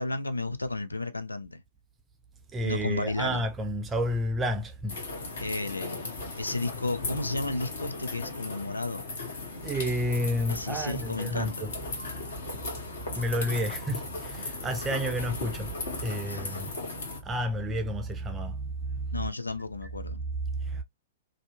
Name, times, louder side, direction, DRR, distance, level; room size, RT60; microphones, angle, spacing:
voice 1, 0.0-1.6 2.6-3.4 5.4-9.0 10.5-11.7 16.3-16.7 19.1-20.2, left 2 dB, 85° left, 0.4 m, -33 dB
voice 2, 2.5-5.0 9.6-11.8 13.1-16.7 17.2-19.3 19.8-19.9 20.5-20.8, equal, 15° right, 0.4 m, -31 dB
sound 1, 4.9-17.2, left 3 dB, 65° left, 0.9 m, -37 dB
2.6 x 2.1 x 2.4 m
figure-of-eight pair, 110°, 0 cm